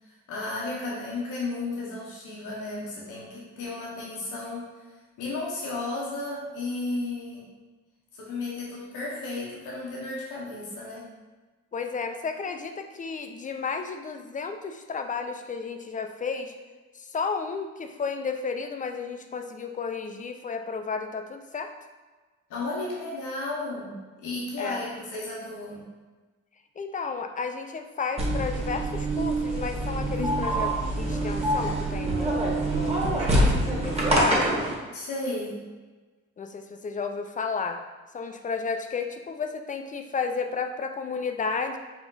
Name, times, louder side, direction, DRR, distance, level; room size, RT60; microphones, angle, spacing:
voice 1, 0.3-4.7 5.2-7.4 8.1-11.1 22.5-25.8 30.1-30.5 34.9-35.6, left 2 dB, 85° left, -4 dB, 1.1 m, -33 dB
voice 2, 11.7-16.5 16.9-21.7 24.6-24.8 26.8-30.7 30.9-34.6 36.4-37.8 38.1-41.8, left 5 dB, 25° left, 6 dB, 0.5 m, -32 dB
sound 1, 28.2-34.7, right 1 dB, 20° right, 1.2 m, -25 dB
4.9 x 2.4 x 3.9 m, 1.3 s
cardioid pair, 90°, 30 cm